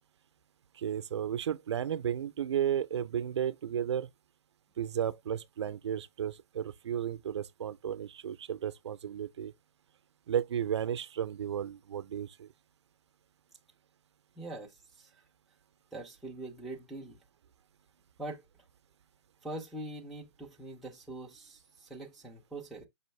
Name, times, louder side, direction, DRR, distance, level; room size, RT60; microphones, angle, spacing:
voice 1, 0.7-4.1 4.8-9.5 10.3-12.5, right 9 dB, 70° right, 0.5 m, -33 dB
voice 2, 14.4-15.2 15.9-17.2 18.2-18.4 19.4-22.9, right 2 dB, ahead, 0.3 m, -43 dB
5.4 x 2.6 x 3.1 m
hypercardioid pair, 160°, 15 cm